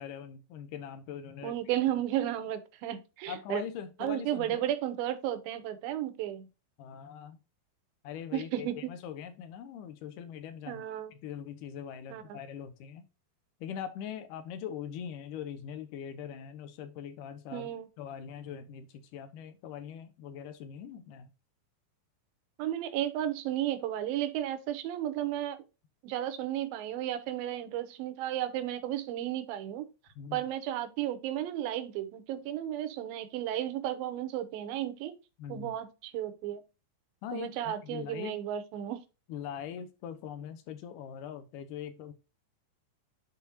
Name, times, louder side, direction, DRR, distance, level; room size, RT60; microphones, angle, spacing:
voice 1, 0.0-1.5 3.3-4.6 6.8-7.4 8.0-10.8 11.1-13.1 13.6-17.7 18.0-21.3 30.2-30.4 35.4-35.7 37.2-38.4 39.3-42.1, left 8 dB, 75° left, 2.2 m, -42 dB
voice 2, 1.4-3.6 4.0-6.5 8.3-8.9 10.7-11.1 12.1-12.2 17.5-17.9 22.6-25.6 26.0-29.9 30.3-35.1 35.5-36.6 37.3-39.0, right 12 dB, 80° right, 2.5 m, -33 dB
11.0 x 4.1 x 2.8 m
omnidirectional pair, 4.3 m